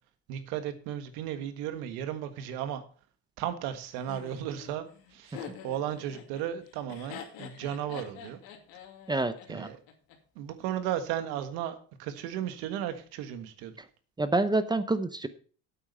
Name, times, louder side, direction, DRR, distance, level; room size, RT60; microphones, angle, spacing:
voice 1, 0.3-2.8 3.4-4.8 5.1-8.4 9.5-9.8 10.3-13.7, right 10 dB, 80° right, 10 dB, 1.6 m, -35 dB
Laughter, 4.1-10.2, left 8 dB, 75° left, 2.6 m, -46 dB
voice 2, 9.1-9.7 14.2-15.3, right 2 dB, 10° right, 12 dB, 0.7 m, -27 dB
8.7 x 8.3 x 5.5 m, 0.41 s
cardioid pair, 125°, 36 cm